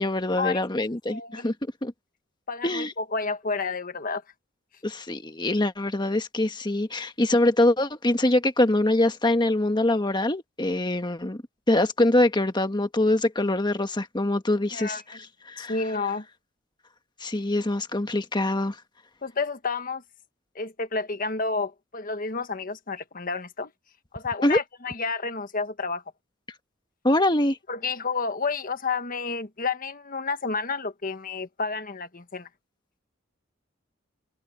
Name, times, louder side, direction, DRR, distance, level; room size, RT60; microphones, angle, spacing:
voice 1, 0.0-1.5 1.8-1.9 2.6-2.9 4.8-11.4 11.7-15.2 15.5-15.7 17.2-18.7 24.4-24.6 27.0-27.6, left 1 dB, 25° left, 1.4 m, -24 dB
voice 2, 1.1-1.5 2.5-4.2 14.7-15.2 15.6-16.2 19.2-20.0 20.5-23.7 24.1-26.0 27.7-32.5, left 4 dB, 45° left, 1.5 m, -30 dB
head